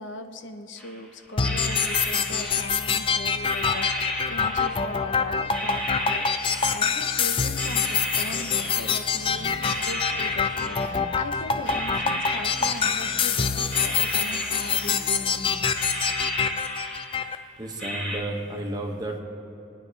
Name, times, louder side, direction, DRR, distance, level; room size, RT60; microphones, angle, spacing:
voice 1, 0.0-15.7, left 2 dB, 85° left, 6 dB, 0.8 m, -38 dB
sound 1, 0.8-1.0 1.4-3.1 3.5-5.1 5.5-7.2 7.6-9.2 9.5-11.2 11.6-13.3 13.7-15.4 15.7-17.4 17.8-18.2, equal, 5° left, 1.8 m, -34 dB
sound 2, 1.4-17.4, left 6 dB, 30° left, 0.4 m, -26 dB
sound 3, 7.6-15.3, right 2 dB, 45° right, 0.9 m, -46 dB
voice 2, 17.2-19.2, right 1 dB, 20° right, 2 dB, 1.2 m, -33 dB
27.5 x 9.5 x 3.3 m, 2.8 s
head